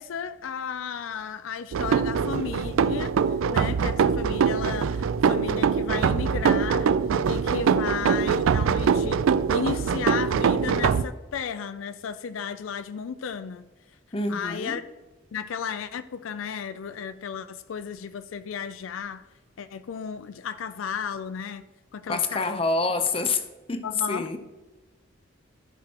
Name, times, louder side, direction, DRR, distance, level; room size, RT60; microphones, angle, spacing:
voice 1, 0.0-3.2 3.5-6.9 7.3-13.7 14.3-14.8 15.3-19.3 19.6-21.7 21.9-22.6 23.8-24.3, left 7 dB, 80° left, 0.4 m, -34 dB
sound 1, 1.7-11.0, right 6 dB, 85° right, 0.4 m, -23 dB
voice 2, 14.1-14.8 22.1-24.4, left 3 dB, 30° left, 0.7 m, -27 dB
14.0 x 5.8 x 2.9 m
head